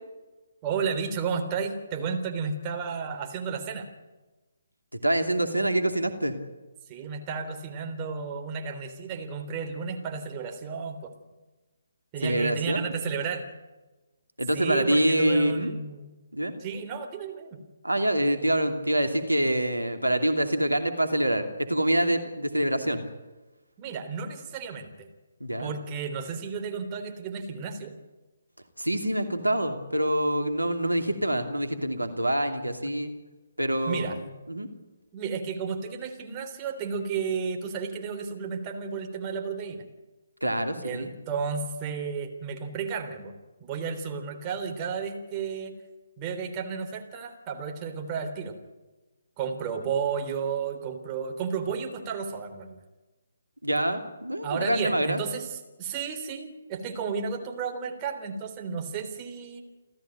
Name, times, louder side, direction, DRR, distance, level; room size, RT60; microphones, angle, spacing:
voice 1, 0.6-3.9 6.9-11.1 12.1-13.5 14.5-16.1 16.6-17.6 23.8-25.1 25.6-27.9 33.9-34.2 35.1-39.8 40.8-43.3 43.6-45.7 46.2-48.6 49.4-52.8 54.4-59.6, right 6 dB, 25° right, 4 dB, 3.5 m, -32 dB
voice 2, 5.0-6.3 12.2-12.8 14.4-15.7 16.3-16.5 17.8-23.0 25.4-25.7 28.8-33.1 33.6-34.7 40.4-41.1 53.6-55.2, right 1 dB, 90° right, 6 dB, 2.7 m, -26 dB
29.5 x 14.0 x 9.0 m, 1.1 s
figure-of-eight pair, 140°, 0 cm